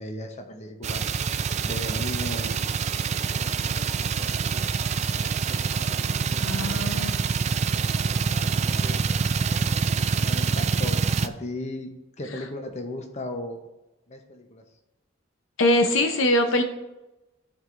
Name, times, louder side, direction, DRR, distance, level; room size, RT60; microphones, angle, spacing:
voice 1, 0.0-1.4 1.6-2.7 3.3-4.7 5.2-7.4 8.0-9.0 10.1-11.9 12.2-13.6 14.1-14.6, left 1 dB, 35° left, 4 dB, 0.8 m, -37 dB
sound 1, 0.8-11.3, right 5 dB, 35° right, 0.3 m, -26 dB
voice 2, 6.4-7.1 15.6-16.6, left 1 dB, 70° left, 6 dB, 0.7 m, -22 dB
14.0 x 4.7 x 2.5 m, 0.99 s
head